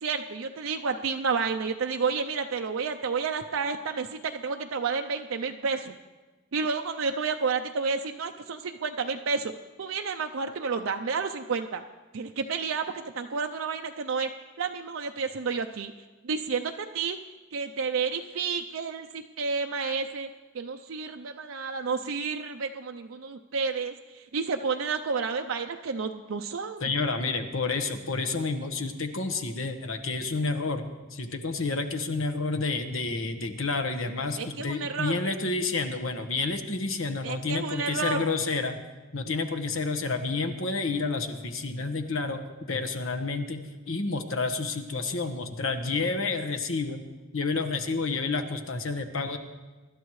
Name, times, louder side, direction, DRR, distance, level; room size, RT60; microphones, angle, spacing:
voice 1, 0.0-5.9 6.5-9.5 9.8-11.8 12.1-14.3 14.6-15.9 16.2-17.2 17.5-20.3 20.5-26.9 34.4-35.1 37.2-38.2, right 5 dB, 85° right, 4 dB, 0.5 m, -30 dB
voice 2, 26.8-38.8 39.1-47.0 47.3-49.4, left 3 dB, 90° left, 7 dB, 1.2 m, -30 dB
24.0 x 12.0 x 3.2 m, 1.3 s
head